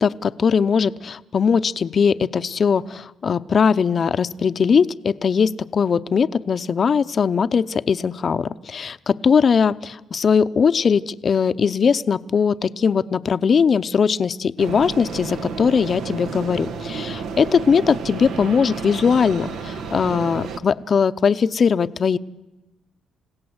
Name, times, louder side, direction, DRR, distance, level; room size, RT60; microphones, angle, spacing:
voice 1, 0.0-22.2, left 6 dB, 45° left, 13 dB, 0.7 m, -20 dB
sound 1, 14.6-20.6, right 5 dB, 80° right, 1.5 m, -31 dB
30.0 x 16.5 x 8.0 m, 1.1 s
cardioid pair, 90°, 0 cm